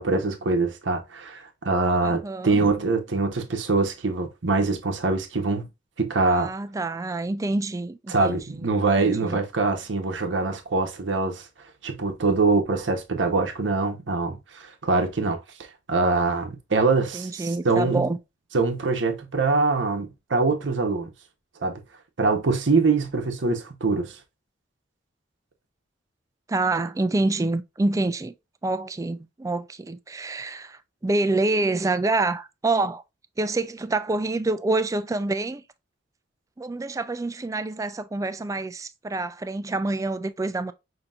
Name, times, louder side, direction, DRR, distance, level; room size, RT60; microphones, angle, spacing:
voice 1, 0.0-5.7 6.0-6.5 8.1-11.5 11.8-15.4 15.9-18.1 18.5-21.1 21.6-21.8 22.2-24.2, right 3 dB, 85° right, 0.8 m, -24 dB
voice 2, 2.0-2.6 6.2-8.7 9.0-9.4 17.1-18.2 26.5-28.3 28.6-33.0 33.4-35.6 36.6-40.7, right 2 dB, 20° right, 0.3 m, -27 dB
5.5 x 2.8 x 2.3 m
head